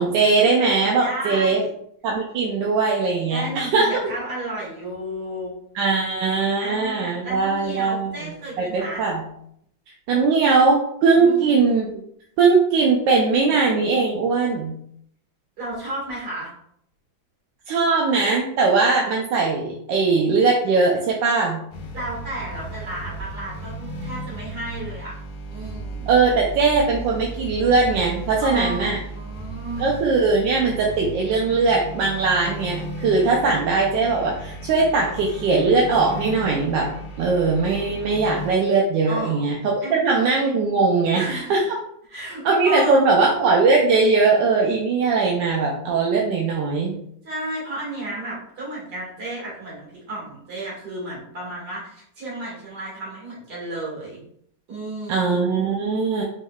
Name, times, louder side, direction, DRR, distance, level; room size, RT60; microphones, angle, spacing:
voice 1, 0.0-1.6 2.0-3.9 5.7-9.2 10.1-12.0 12.4-14.7 17.7-21.6 26.1-29.0 29.8-36.9 37.2-41.8 42.4-46.9 55.1-56.2, right 4 dB, 75° right, -1 dB, 1.2 m, -20 dB
voice 2, 1.0-1.7 3.3-5.5 6.6-9.0 10.1-10.3 11.1-11.4 15.6-16.5 21.9-25.2 25.5-26.1 28.5-30.0 39.1-39.5 39.8-40.0 41.1-41.6 42.1-43.0 47.2-54.2 54.7-55.4, right 1 dB, 55° right, -5 dB, 2.4 m, -33 dB
sound 1, 21.7-38.5, right 1 dB, 60° left, 1.2 m, -35 dB
5.1 x 3.8 x 2.3 m, 0.70 s
omnidirectional pair, 2.2 m